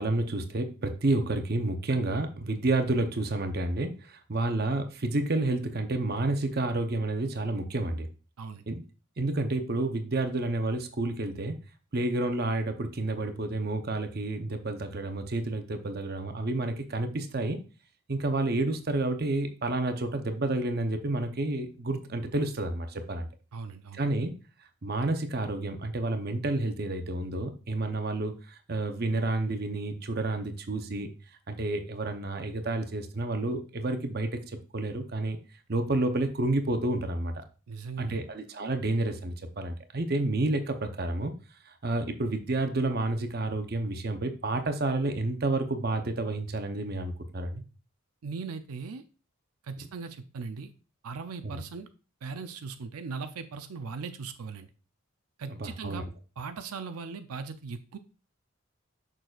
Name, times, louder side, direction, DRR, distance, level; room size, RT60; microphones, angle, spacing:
voice 1, 0.0-8.1 8.7-8.8 9.2-11.5 11.9-17.6 18.1-23.3 23.9-24.3 24.8-31.1 31.5-35.4 35.7-37.3 38.0-41.3 41.7-47.6 51.4-51.6 55.5-56.0, right 2 dB, 45° right, 6 dB, 0.7 m, -30 dB
voice 2, 23.5-24.0 37.7-38.2 48.2-49.0 49.6-50.7 51.0-51.9 52.2-54.7 55.4-56.0 56.4-58.0, right 5 dB, 85° right, 8 dB, 0.5 m, -39 dB
6.5 x 6.1 x 2.4 m, 0.34 s
head